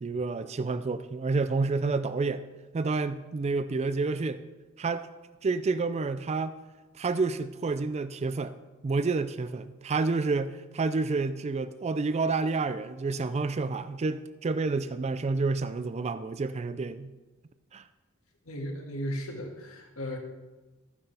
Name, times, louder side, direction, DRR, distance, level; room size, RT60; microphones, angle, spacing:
voice 1, 0.0-2.4 2.7-4.4 4.8-5.1 5.4-6.6 6.9-8.5 8.8-17.1 17.7-17.9, right 3 dB, 30° right, 12 dB, 0.4 m, -29 dB
voice 2, 18.5-20.2, equal, 80° left, 1 dB, 1.9 m, -35 dB
13.5 x 9.7 x 3.4 m, 1.2 s
head